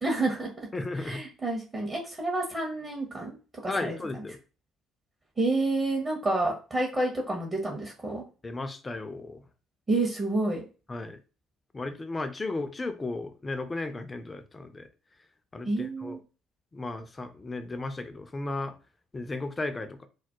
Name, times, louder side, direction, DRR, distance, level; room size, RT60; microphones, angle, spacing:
voice 1, 0.0-0.7 1.0-3.3 3.6-4.2 5.4-8.2 9.9-10.6 15.6-16.2, right 2 dB, 30° right, 0.6 m, -29 dB
voice 2, 0.7-1.2 3.7-4.4 8.4-9.4 10.9-11.2 11.7-14.9 15.5-16.2 16.7-18.7 19.1-20.1, left 2 dB, 25° left, 0.4 m, -35 dB
2.3 x 2.0 x 2.7 m
figure-of-eight pair, 50°, 0 cm